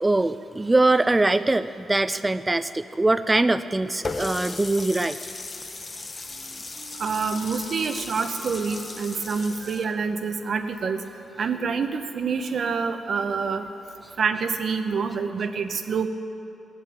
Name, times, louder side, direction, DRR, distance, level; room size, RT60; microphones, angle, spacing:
voice 1, 0.0-5.2, right 2 dB, 15° right, 11 dB, 0.3 m, -22 dB
Water tap faucet, 4.0-9.8, left 3 dB, 30° left, 0.9 m, -36 dB
Wind instrument woodwind instrument, 6.3-13.8, right 3 dB, 80° right, 2.1 m, -48 dB
voice 2, 7.0-11.0 11.4-13.6 14.2-16.1, right 5 dB, 55° right, 7 dB, 0.9 m, -27 dB
19.5 x 7.4 x 8.8 m, 2.8 s
wide cardioid pair, 145°, 0 cm